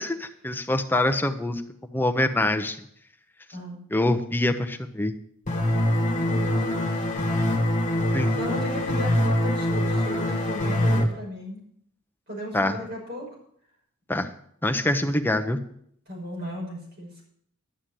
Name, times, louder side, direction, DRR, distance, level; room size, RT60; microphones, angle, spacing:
voice 1, 0.0-2.8 3.9-5.1 8.1-8.4 12.5-12.8 14.1-14.3 14.6-15.6, left 1 dB, 10° left, 6 dB, 0.7 m, -25 dB
sound 1, 5.5-11.0, left 1 dB, 35° left, 1.7 m, -24 dB
voice 2, 5.9-6.7 8.3-11.6 12.3-13.3 16.1-17.1, equal, 45° right, -3 dB, 5.9 m, -35 dB
11.5 x 6.8 x 7.6 m, 0.67 s
head